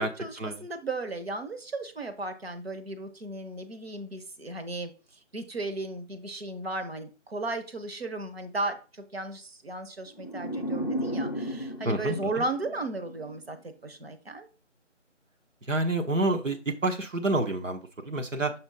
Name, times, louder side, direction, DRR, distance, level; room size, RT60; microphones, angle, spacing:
voice 1, 0.0-4.9 5.3-14.5, right 2 dB, 55° right, 8 dB, 1.0 m, -35 dB
sound 1, 10.2-13.4, equal, 40° left, 0.6 m, -34 dB
voice 2, 15.7-18.5, right 2 dB, 80° right, 5 dB, 1.1 m, -28 dB
6.1 x 4.3 x 3.9 m, 0.34 s
figure-of-eight pair, 170°, 38 cm